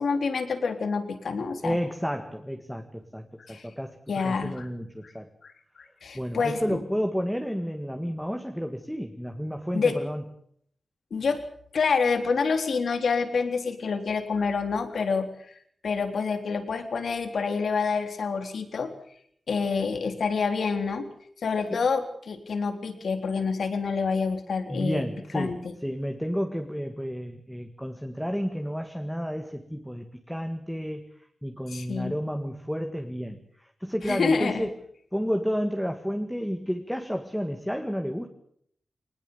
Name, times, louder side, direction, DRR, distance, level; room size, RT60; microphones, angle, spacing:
voice 1, 0.0-1.8 3.5-3.7 4.1-4.7 5.0-5.1 5.4-5.5 6.0-6.8 9.7-9.9 11.1-11.4 11.7-15.3 15.8-18.9 19.5-21.1 21.4-25.1 25.3-25.6 31.7-32.1 34.0-34.7, left 5 dB, 80° left, 7 dB, 3.6 m, -27 dB
voice 2, 1.6-4.0 4.2-5.3 6.1-10.2 24.7-25.5 25.8-31.2 31.4-33.4 33.8-34.7 35.1-38.3, equal, ahead, 4 dB, 1.9 m, -31 dB
23.5 x 20.0 x 7.0 m, 0.65 s
wide cardioid pair, 145°, 0 cm